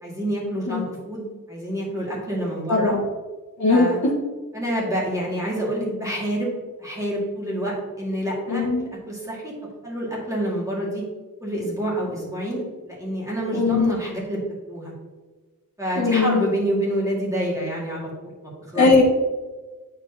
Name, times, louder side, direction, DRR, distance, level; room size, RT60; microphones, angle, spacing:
voice 1, 0.0-2.9 3.7-4.0 4.5-6.5 6.8-11.0 11.4-14.4 14.7-14.9 15.8-18.9, right 1 dB, 10° right, -5 dB, 1.8 m, -28 dB
voice 2, 2.7-3.0 3.6-4.1 8.5-8.9 13.5-13.9 16.0-16.5 18.7-19.0, left 3 dB, 55° left, -2 dB, 1.2 m, -19 dB
8.8 x 4.6 x 2.7 m, 1.3 s
wide cardioid pair, 125°, 34 cm